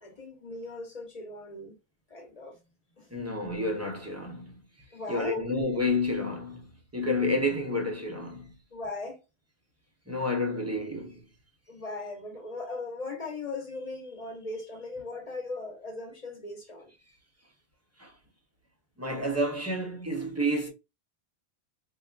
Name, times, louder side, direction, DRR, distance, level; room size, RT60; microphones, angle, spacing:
voice 1, 0.0-1.8 2.1-2.6 3.0-3.1 4.9-5.5 8.7-9.2 11.7-16.9, left 2 dB, 40° left, 1.0 m, -38 dB
voice 2, 3.1-4.6 5.1-6.7 6.9-8.5 10.1-11.2 18.0-18.1 19.0-20.7, left 1 dB, 15° right, 0.6 m, -30 dB
3.7 x 2.4 x 2.3 m
omnidirectional pair, 1.1 m